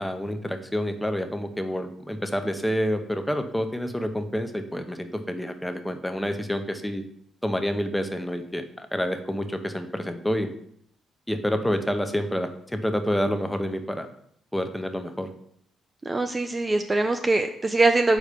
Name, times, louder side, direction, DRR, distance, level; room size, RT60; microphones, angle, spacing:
voice 1, 0.0-7.0 7.4-8.6 8.9-10.5 11.3-14.1 14.5-15.3, equal, 5° left, 7 dB, 0.7 m, -28 dB
voice 2, 16.1-18.2, right 2 dB, 25° right, 6 dB, 0.4 m, -22 dB
5.1 x 4.1 x 4.9 m, 0.69 s
cardioid pair, 90°, 0 cm